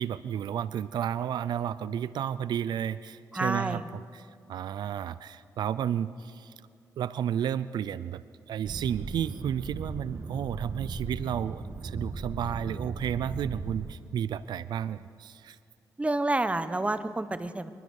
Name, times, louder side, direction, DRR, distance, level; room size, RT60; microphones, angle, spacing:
voice 1, 0.0-6.5 7.0-8.2 8.5-15.6, right 9 dB, 80° right, 16 dB, 0.5 m, -32 dB
voice 2, 3.3-3.8 16.0-17.7, right 2 dB, 15° right, 12 dB, 1.1 m, -29 dB
sound 1, 8.6-13.9, right 3 dB, 45° right, 1.9 m, -37 dB
24.0 x 20.0 x 6.5 m, 2.4 s
cardioid pair, 70°, 7 cm